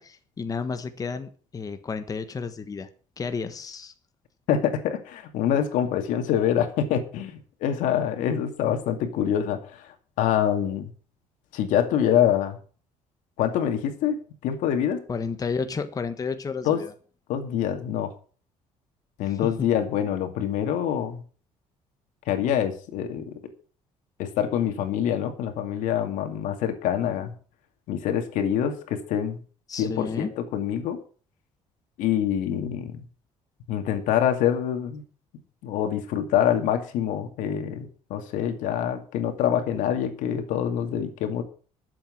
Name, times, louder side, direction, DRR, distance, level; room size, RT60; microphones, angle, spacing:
voice 1, 0.0-2.9 3.2-3.9 15.1-16.9 19.2-19.7 29.7-30.3, left 5 dB, 30° left, 9 dB, 1.2 m, -32 dB
voice 2, 4.5-9.6 10.2-10.9 11.5-12.6 13.4-14.2 14.4-15.0 16.7-16.8 17.3-18.1 19.2-21.2 22.3-23.4 24.2-27.3 27.9-29.4 29.8-31.0 32.0-33.0 33.7-35.0 35.6-41.4, left 9 dB, 85° left, 7 dB, 2.4 m, -25 dB
12.0 x 7.7 x 7.3 m, 0.41 s
cardioid pair, 120°, 13 cm